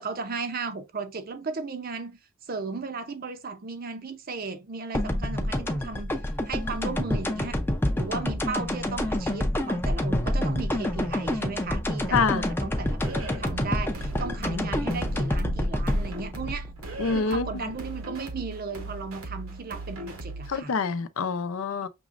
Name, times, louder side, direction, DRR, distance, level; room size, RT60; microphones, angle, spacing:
voice 1, 0.0-6.1 6.5-7.6 7.9-16.7 17.1-20.7, right 4 dB, 45° right, 0.6 m, -35 dB
sound 1, 4.9-17.8, left 1 dB, 10° left, 0.5 m, -28 dB
voice 2, 12.1-12.4 14.5-14.6 17.0-17.7 20.5-21.9, left 5 dB, 75° left, 0.5 m, -26 dB
sound 2, 13.0-20.6, right 2 dB, 75° right, 1.1 m, -39 dB
6.1 x 3.1 x 2.5 m
head